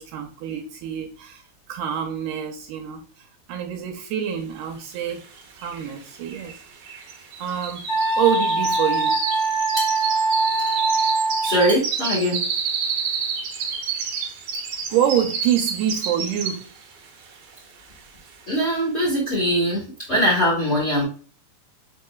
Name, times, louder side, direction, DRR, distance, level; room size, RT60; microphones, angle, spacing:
voice 1, 0.0-5.3 5.6-6.6 7.4-9.2 14.9-16.7, right 9 dB, 85° right, 2.1 m, -26 dB
sound 1, 5.1-5.2 5.4-16.8 17.2-17.5 18.0-18.1, right 5 dB, 65° right, 1.7 m, -29 dB
Wind instrument woodwind instrument, 7.9-11.7, right 3 dB, 75° left, 1.0 m, -22 dB
voice 2, 11.4-12.4 18.5-21.0, equal, 40° left, 0.9 m, -22 dB
4.6 x 3.8 x 2.3 m
omnidirectional pair, 3.6 m